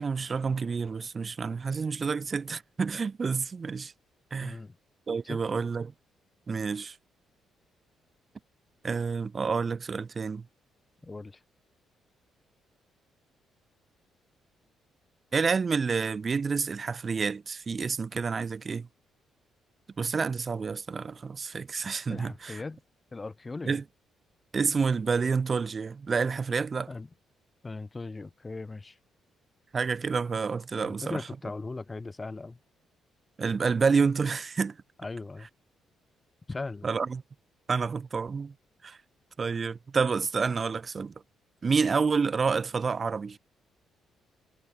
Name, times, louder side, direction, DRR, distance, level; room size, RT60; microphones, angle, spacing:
voice 1, 0.0-3.9 4.3-4.6 5.1-5.9 6.5-7.0 8.8-10.5 15.3-18.9 20.0-22.6 23.6-23.8 24.5-26.9 29.7-31.3 33.4-34.8 36.8-37.2 37.7-38.5 38.8-39.0 39.4-41.1 41.6-43.4, right 5 dB, 35° right, 0.7 m, -29 dB
voice 2, 4.4-4.7 5.2-5.6 11.0-11.4 22.1-22.8 23.1-23.7 26.9-27.1 27.6-29.0 30.8-32.6 35.0-35.5 36.5-36.9, left 3 dB, 25° left, 0.6 m, -38 dB
cardioid pair, 90°, 0 cm